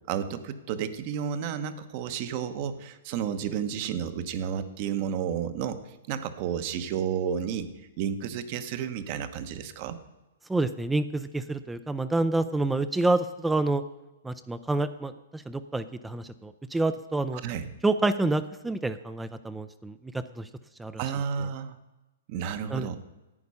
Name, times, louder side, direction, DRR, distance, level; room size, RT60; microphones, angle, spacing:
voice 1, 0.1-7.7 8.0-10.0 17.3-17.7 21.0-21.8 22.3-23.0, right 8 dB, 45° right, 11 dB, 0.9 m, -32 dB
voice 2, 10.5-13.8 14.2-17.4 17.8-20.5 20.8-21.0 22.7-22.9, right 2 dB, 5° right, 12 dB, 0.4 m, -28 dB
11.0 x 8.4 x 5.5 m, 1.0 s
hypercardioid pair, 140°, 0 cm